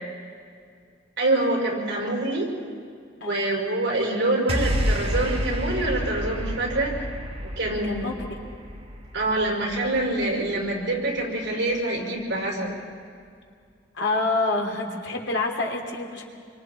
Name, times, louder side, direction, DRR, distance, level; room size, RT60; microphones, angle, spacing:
voice 1, 1.2-2.5 3.2-6.9 7.4-8.1 9.1-12.8, right 2 dB, 75° right, -2 dB, 5.6 m, -25 dB
sound 1, 4.5-10.9, equal, 35° right, 1.7 m, -30 dB
voice 2, 7.8-8.3 13.9-16.2, left 2 dB, 90° left, 1 dB, 3.1 m, -27 dB
28.0 x 23.5 x 4.4 m, 2.2 s
head